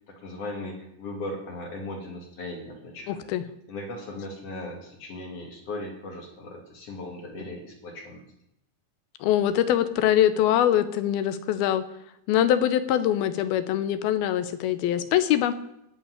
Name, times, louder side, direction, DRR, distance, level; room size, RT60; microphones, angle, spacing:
voice 1, 0.0-3.3 3.7-8.2, left 2 dB, 40° left, 2 dB, 3.2 m, -38 dB
voice 2, 3.1-3.4 9.2-11.8 12.3-15.6, left 11 dB, 75° left, 12 dB, 2.6 m, -23 dB
16.5 x 5.9 x 9.6 m, 0.81 s
omnidirectional pair, 4.6 m